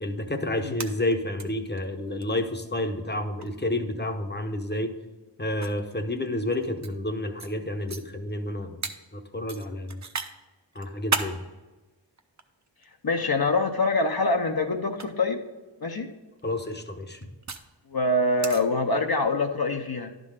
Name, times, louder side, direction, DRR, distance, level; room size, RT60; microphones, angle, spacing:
voice 1, 0.0-4.9 5.4-8.9 9.1-10.0 10.7-11.4 16.4-17.3, left 1 dB, 25° left, 6 dB, 0.8 m, -30 dB
sound 1, 0.8-1.4 1.8-1.9 2.2-2.3 3.4-3.6 4.7-4.8 5.6-6.9 7.4-7.5 7.9-8.0 8.8-8.9 9.5-10.3 10.7-11.3 12.2-12.9 14.0-14.2 14.9-15.0 16.4-17.7 18.4-18.6, right 4 dB, 40° right, 0.6 m, -33 dB
voice 2, 13.0-15.4 15.8-16.1 17.9-20.1, left 2 dB, 55° left, 4 dB, 0.7 m, -25 dB
11.0 x 3.8 x 6.5 m, 1.2 s
wide cardioid pair, 65°, 45 cm